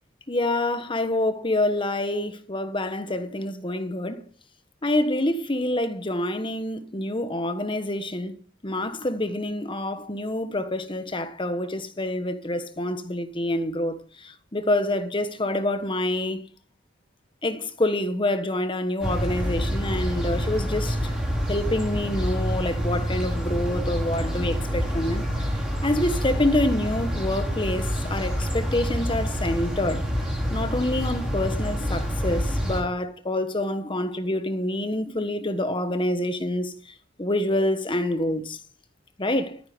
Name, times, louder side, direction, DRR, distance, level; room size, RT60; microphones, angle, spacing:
voice 1, 0.3-4.2 4.8-16.4 17.4-21.1 21.5-25.3 25.8-30.1 30.5-36.7 37.2-38.6 39.2-39.6, left 1 dB, 25° left, 1.3 m, -27 dB
sound 1, 19.0-32.8, equal, 5° right, 4.0 m, -27 dB
13.5 x 9.5 x 5.3 m
head